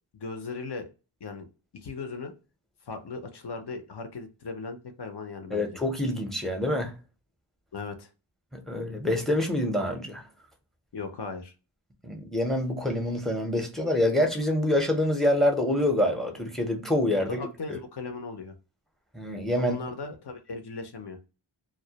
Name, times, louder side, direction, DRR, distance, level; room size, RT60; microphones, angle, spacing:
voice 1, 0.1-0.9 1.2-1.5 1.8-2.3 2.9-5.7 7.7-8.1 10.9-11.5 17.2-18.5 19.5-21.2, left 4 dB, 55° left, 0.6 m, -37 dB
voice 2, 5.5-6.9 8.5-10.2 12.0-17.4 17.7-17.8 19.1-19.8, left 1 dB, ahead, 0.6 m, -26 dB
2.1 x 2.0 x 2.7 m
wide cardioid pair, 65°, 48 cm